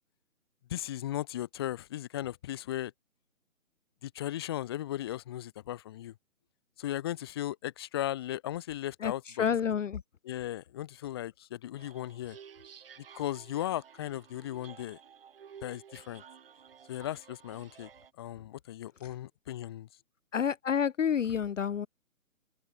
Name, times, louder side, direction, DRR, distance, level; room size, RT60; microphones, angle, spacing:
voice 1, 0.7-2.9 4.0-6.1 6.8-9.5 10.2-12.4 13.1-15.0 15.6-16.2 16.9-17.9 18.2-19.9, left 13 dB, 15° left, 1.3 m, -36 dB
voice 2, 9.0-10.0 19.0-19.1 20.3-21.9, left 8 dB, 60° left, 0.7 m, -29 dB
sound 1, 11.8-18.1, right 8 dB, 40° right, 2.5 m, -53 dB
open air
hypercardioid pair, 160°, 42 cm